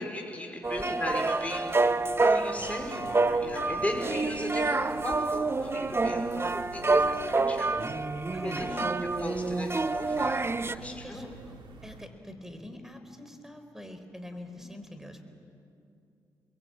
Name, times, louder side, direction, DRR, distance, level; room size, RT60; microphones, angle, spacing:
voice 1, 0.0-1.6 2.2-7.7 8.4-8.9 9.2-11.3 14.5-14.7, left 1 dB, 15° left, 1 dB, 5.3 m, -37 dB
sound 1, 0.6-10.8, right 3 dB, 30° right, 1.0 m, -28 dB
sound 2, 2.6-12.1, right 4 dB, 70° right, 3.0 m, -50 dB
voice 2, 8.3-8.9 10.8-11.5 11.8-15.2, left 1 dB, 5° right, 7 dB, 4.5 m, -44 dB
30.0 x 22.0 x 8.9 m, 2.5 s
supercardioid pair, 55°, 9 cm